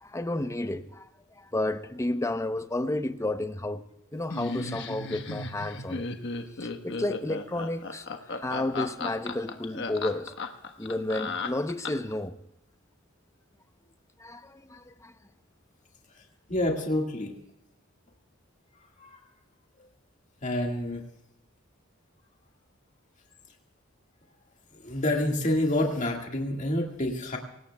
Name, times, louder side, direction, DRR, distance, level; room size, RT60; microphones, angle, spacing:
voice 1, 0.0-1.1 1.4-3.8 4.1-6.1 6.6-10.4 10.8-12.3 14.2-15.1, left 1 dB, 15° left, 0.7 m, -32 dB
Laughter, 4.3-12.2, left 3 dB, 60° left, 1.2 m, -35 dB
voice 2, 16.5-17.3 19.0-19.2 20.4-21.0 24.8-27.4, left 1 dB, 35° left, 1.8 m, -28 dB
24.0 x 18.5 x 2.3 m
head